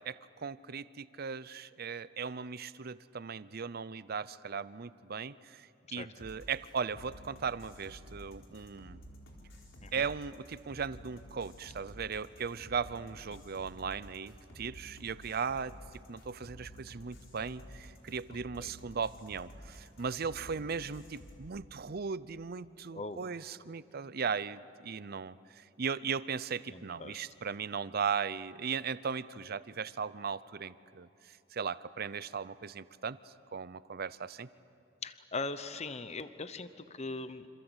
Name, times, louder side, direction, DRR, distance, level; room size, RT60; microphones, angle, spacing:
voice 1, 0.0-9.0 9.9-15.7 16.1-33.2 33.5-34.5, right 6 dB, 50° right, 17 dB, 0.6 m, -37 dB
sound 1, 6.2-21.4, equal, 80° left, 4.4 m, -52 dB
voice 2, 22.9-23.2 26.7-27.2 35.0-37.5, left 3 dB, 35° left, 12 dB, 0.9 m, -40 dB
27.0 x 27.0 x 8.1 m, 2.8 s
head